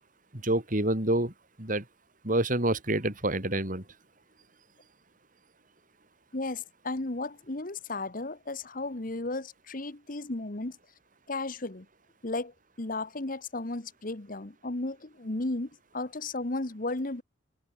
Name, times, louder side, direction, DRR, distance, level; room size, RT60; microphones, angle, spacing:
voice 1, 0.3-1.3 1.6-1.8 2.2-3.8, right 1 dB, 45° right, 3.9 m, -27 dB
voice 2, 6.3-10.8 11.3-11.8 12.2-12.5 12.8-17.2, left 2 dB, 45° left, 1.4 m, -34 dB
head